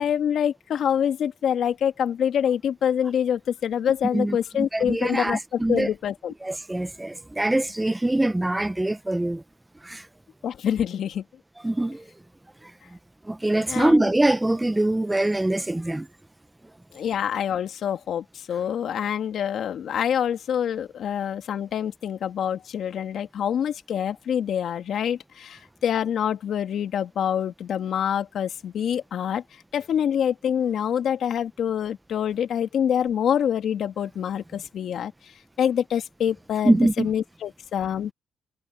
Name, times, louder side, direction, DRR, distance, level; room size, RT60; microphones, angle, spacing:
voice 1, 0.0-6.3 10.4-11.2 13.7-14.1 16.9-29.4 29.7-35.1 35.6-38.1, left 9 dB, 65° left, 2.1 m, -26 dB
voice 2, 4.7-5.9 6.4-9.4 9.8-10.0 11.6-12.0 13.3-16.1 36.6-37.1, right 1 dB, 10° right, 0.8 m, -23 dB
cardioid pair, 90°, 0 cm